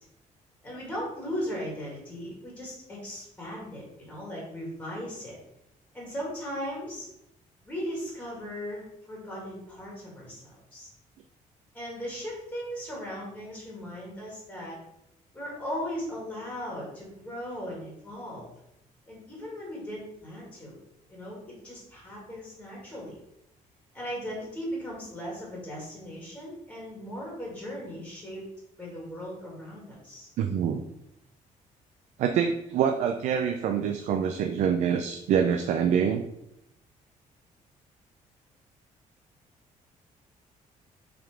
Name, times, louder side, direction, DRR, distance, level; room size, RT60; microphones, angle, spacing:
voice 1, 0.6-5.4 5.9-7.0 7.7-10.9 11.7-14.8 15.3-18.5 19.1-20.8 21.1-23.2 23.9-28.4 28.8-30.3, equal, 10° left, -4 dB, 2.1 m, -37 dB
voice 2, 30.4-30.8 32.2-36.2, right 7 dB, 60° right, 5 dB, 0.5 m, -25 dB
5.8 x 3.7 x 4.9 m, 0.80 s
cardioid pair, 180°, 14 cm